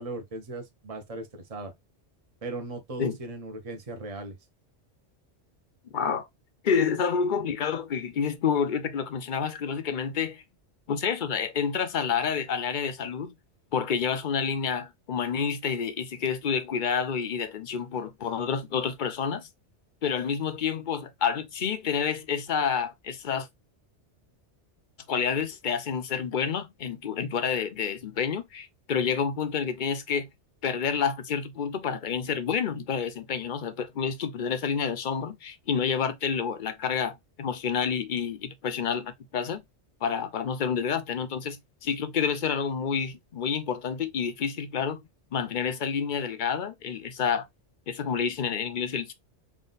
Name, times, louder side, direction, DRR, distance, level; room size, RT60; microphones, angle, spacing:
voice 1, 0.0-1.7 2.4-4.4, right 2 dB, 35° right, 0.9 m, -38 dB
voice 2, 5.9-6.3 6.6-10.4 10.9-13.3 13.7-19.5 20.0-23.5 25.1-30.3 30.6-39.6 40.0-45.0 45.3-47.5 47.9-49.1, left 6 dB, 50° left, 0.7 m, -29 dB
3.6 x 2.5 x 3.9 m
omnidirectional pair, 1.2 m